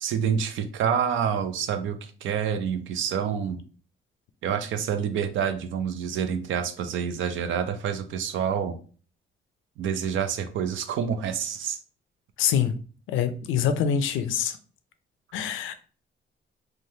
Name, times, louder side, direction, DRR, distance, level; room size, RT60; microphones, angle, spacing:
voice 1, 0.0-3.6 4.4-8.8 9.8-11.8, right 7 dB, 75° right, 8 dB, 0.5 m, -27 dB
voice 2, 12.4-12.7 13.1-14.6 15.3-15.7, left 8 dB, 80° left, 10 dB, 0.4 m, -25 dB
3.2 x 2.3 x 2.7 m, 0.39 s
cardioid pair, 90°, 20 cm